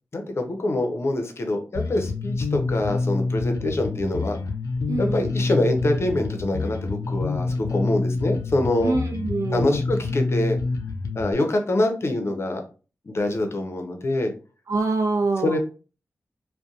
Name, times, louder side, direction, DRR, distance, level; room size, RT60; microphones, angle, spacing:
voice 1, 0.1-4.4 5.0-8.9 9.5-10.6 11.2-12.6 13.1-14.3 15.4-15.6, left 1 dB, 50° left, 4 dB, 0.6 m, -25 dB
Bass guitar, 1.7-11.3, left 3 dB, 90° left, 0.3 m, -27 dB
voice 2, 4.9-5.3 8.8-9.8 14.7-15.6, right 3 dB, 70° right, 4 dB, 0.4 m, -25 dB
2.6 x 2.2 x 2.4 m, 0.34 s
cardioid pair, 50°, 5 cm